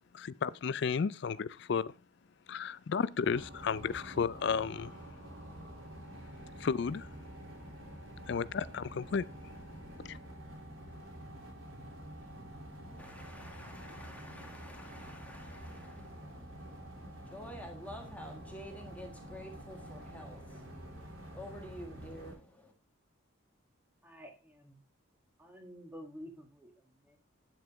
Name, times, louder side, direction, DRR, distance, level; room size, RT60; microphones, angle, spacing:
voice 1, 0.1-1.9 2.5-4.9 6.6-7.1 8.3-9.3 10.1-10.2, left 6 dB, 55° left, 0.4 m, -33 dB
sound 1, 3.2-22.3, right 1 dB, 80° right, 3.0 m, -48 dB
voice 2, 13.0-22.7, equal, 5° left, 1.7 m, -50 dB
voice 3, 24.0-24.8 25.4-27.2, equal, 10° right, 1.7 m, -50 dB
9.0 x 7.9 x 3.5 m
head